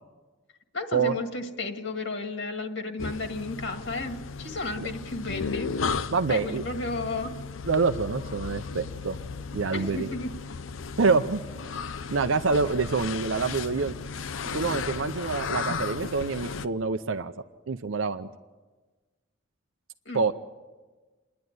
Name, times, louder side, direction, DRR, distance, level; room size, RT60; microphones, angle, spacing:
voice 1, 0.7-5.8 6.3-7.3 9.7-10.3 20.1-20.2, left 3 dB, 65° left, 5 dB, 2.0 m, -33 dB
sound 1, 3.0-16.7, left 5 dB, 90° left, 0.7 m, -35 dB
voice 2, 6.1-6.6 7.7-9.2 9.5-10.1 11.0-11.4 12.1-13.9 14.4-17.3 17.7-18.3 20.1-20.3, right 4 dB, 85° right, 7 dB, 0.7 m, -26 dB
28.5 x 10.5 x 9.6 m, 1.3 s
head